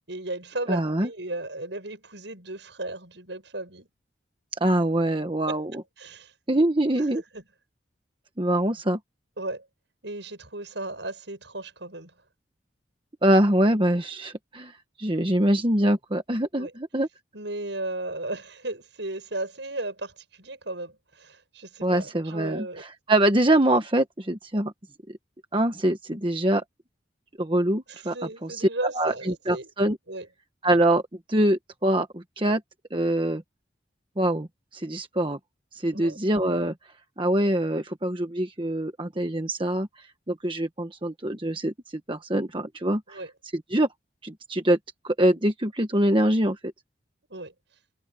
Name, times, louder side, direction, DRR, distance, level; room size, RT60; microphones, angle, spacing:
voice 1, 0.1-3.9 5.5-6.3 6.9-7.4 9.4-9.7 10.0-12.1 16.6-16.7 17.3-22.8 27.9-29.7 30.1-30.3 35.9-36.2 43.1-43.3 47.3-47.5, right 2 dB, 70° right, 7.7 m, -35 dB
voice 2, 0.7-1.1 4.6-5.7 6.5-7.2 8.4-9.0 13.2-14.7 15.0-17.1 21.8-24.7 25.5-26.6 27.4-28.1 28.4-28.7 28.9-30.0 30.6-31.0 31.3-32.6 32.9-33.4 34.2-34.5 34.7-35.4 35.7-36.7 37.2-39.9 40.3-43.2 43.5-43.9 44.2-44.8 45.0-46.6, right 1 dB, 25° right, 1.3 m, -24 dB
head